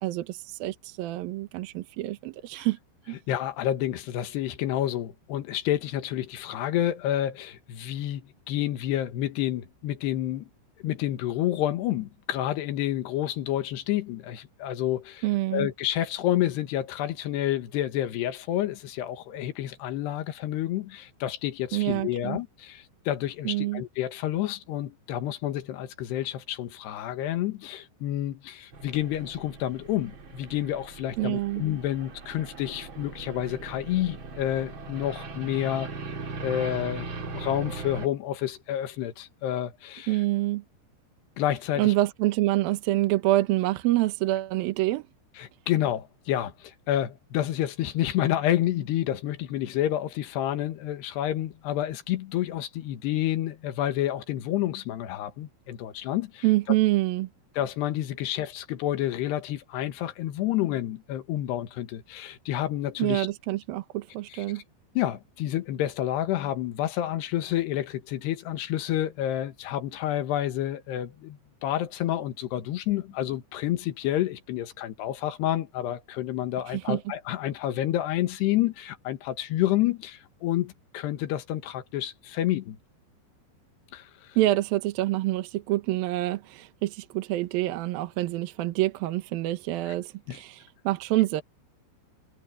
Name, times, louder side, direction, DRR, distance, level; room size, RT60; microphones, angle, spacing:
voice 1, 0.0-2.8 3.1-3.2 15.2-15.7 21.7-22.4 23.4-23.8 31.2-31.6 40.1-40.6 41.8-45.0 56.4-57.3 63.0-64.6 76.7-77.0 84.4-91.4, right 17 dB, 75° right, 2.3 m, -26 dB
voice 2, 3.3-10.5 10.8-15.2 15.5-35.9 36.4-40.2 41.4-41.9 45.4-56.4 57.6-63.3 64.3-64.4 64.9-82.8 83.9-84.3 89.9-90.0 90.3-90.4, left 12 dB, 70° left, 3.4 m, -29 dB
sound 1, 28.7-38.1, right 3 dB, 40° right, 2.1 m, -39 dB
omnidirectional pair, 5.3 m